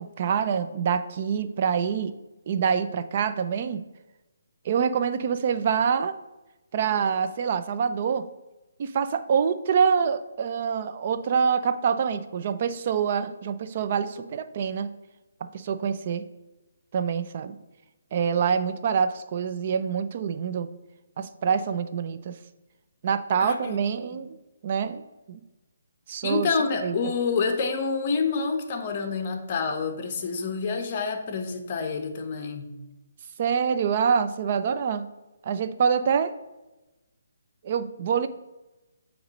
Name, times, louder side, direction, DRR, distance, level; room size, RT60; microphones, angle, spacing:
voice 1, 0.0-2.1 2.5-3.8 4.6-6.1 6.7-8.2 8.8-14.9 15.5-16.2 16.9-17.6 18.1-20.7 21.2-22.4 23.0-24.4 24.6-25.0 25.3-25.4 26.1-26.5 26.8-27.0 33.4-35.1 35.4-36.3 37.6-38.3, right 7 dB, 40° right, 10 dB, 0.5 m, -25 dB
voice 2, 23.4-23.8 24.1-24.2 26.2-32.7, left 5 dB, 35° left, 5 dB, 0.9 m, -28 dB
8.0 x 3.1 x 5.2 m, 1.0 s
hypercardioid pair, 160°, 0 cm